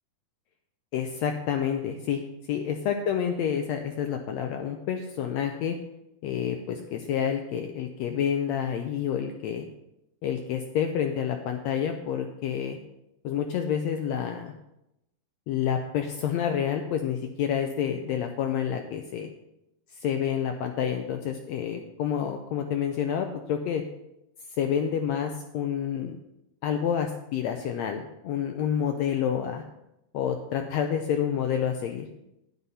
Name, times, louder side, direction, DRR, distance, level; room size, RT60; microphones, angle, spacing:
voice 1, 0.9-2.2 2.5-5.7 6.2-9.7 10.2-12.8 13.2-14.5 15.5-19.3 20.0-23.8 24.6-26.2 26.6-29.6 30.1-32.1, left 8 dB, 80° left, 5 dB, 1.5 m, -28 dB
9.7 x 9.4 x 4.2 m, 0.85 s
omnidirectional pair, 3.8 m